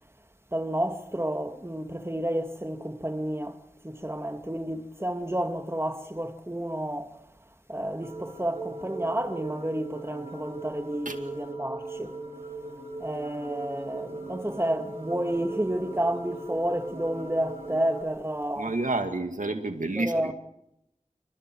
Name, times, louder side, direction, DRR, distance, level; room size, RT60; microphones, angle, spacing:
voice 1, 0.5-7.2 7.7-12.2 13.0-18.7 19.9-20.3, right 1 dB, 20° right, 2.2 m, -30 dB
sound 1, 8.0-18.0, right 3 dB, 50° right, 4.8 m, -39 dB
voice 2, 18.6-20.3, right 2 dB, 90° right, 2.4 m, -29 dB
29.0 x 25.5 x 4.8 m
wide cardioid pair, 50°, 13 cm